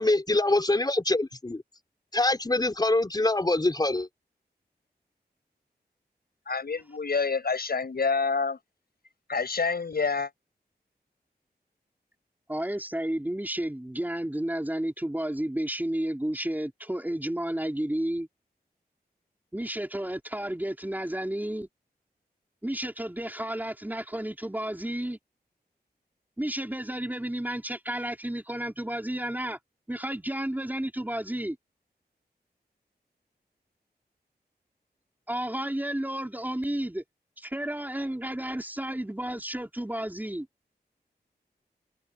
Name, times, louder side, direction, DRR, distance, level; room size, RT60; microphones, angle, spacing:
voice 1, 0.0-1.6 2.1-4.1, left 2 dB, 25° left, 4.8 m, -24 dB
voice 2, 6.5-8.6 9.3-10.3, left 4 dB, 70° left, 6.5 m, -27 dB
voice 3, 12.5-18.3 19.5-21.7 22.6-25.2 26.4-29.6 29.9-31.6 35.3-37.0 37.4-40.5, right 1 dB, 10° right, 4.9 m, -32 dB
wide cardioid pair, 105°, 17 cm